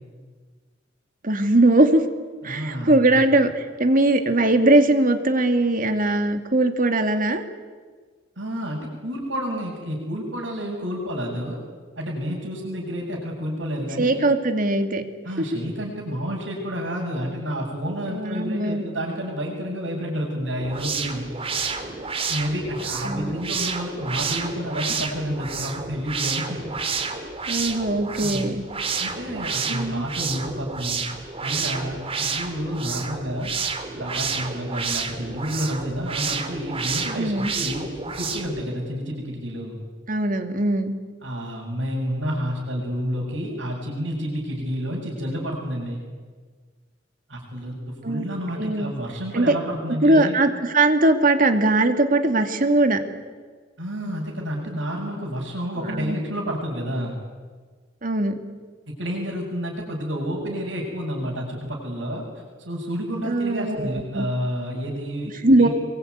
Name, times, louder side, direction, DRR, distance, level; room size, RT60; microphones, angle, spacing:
voice 1, 1.2-2.0 2.4-7.4 14.0-15.0 18.1-18.8 23.0-23.4 27.5-28.6 29.7-30.1 37.1-37.5 40.1-40.9 48.0-48.3 48.5-48.9 49.3-49.6 50.0-53.0 55.8-56.2 58.0-58.4 63.2-64.3 65.4-65.7, right 2 dB, 50° right, 7 dB, 2.5 m, -20 dB
voice 2, 2.4-3.2 8.4-11.6 12.0-14.2 15.2-21.3 22.3-26.6 28.2-28.5 29.0-31.0 31.4-33.5 34.0-37.9 38.2-39.8 41.2-46.0 47.3-50.3 53.8-57.2 58.9-62.2 62.6-65.3 65.6-65.7, equal, 90° right, -5 dB, 7.2 m, -30 dB
sound 1, 20.6-38.6, right 5 dB, 30° right, 2.6 m, -30 dB
26.0 x 23.0 x 9.6 m, 1.5 s
head